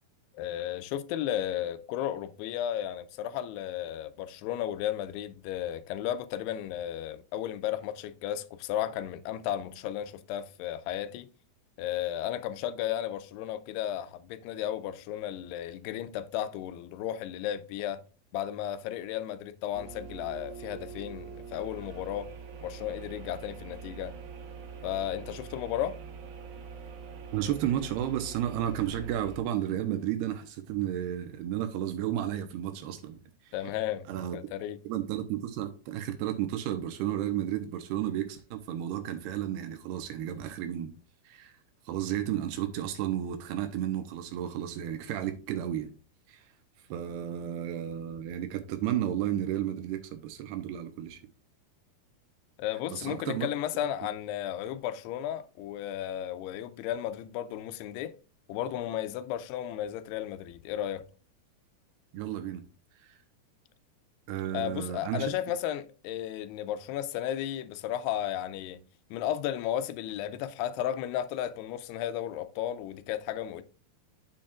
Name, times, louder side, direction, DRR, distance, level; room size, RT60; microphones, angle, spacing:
voice 1, 0.3-11.3 11.8-18.0 18.3-22.3 22.6-24.1 24.8-26.0 33.5-34.1 34.3-34.8 52.6-58.2 58.5-61.1 64.5-68.8 69.1-73.6, left 11 dB, 85° left, 2.7 m, -34 dB
sound 1, 19.7-29.4, right 5 dB, 70° right, 3.4 m, -44 dB
voice 2, 27.3-33.5 34.1-34.4 34.8-40.9 41.2-41.5 41.9-45.9 46.3-46.5 46.9-51.2 52.9-53.5 62.1-62.6 63.0-63.2 64.3-65.4, right 11 dB, 85° right, 2.9 m, -32 dB
8.7 x 7.3 x 2.4 m
omnidirectional pair, 4.6 m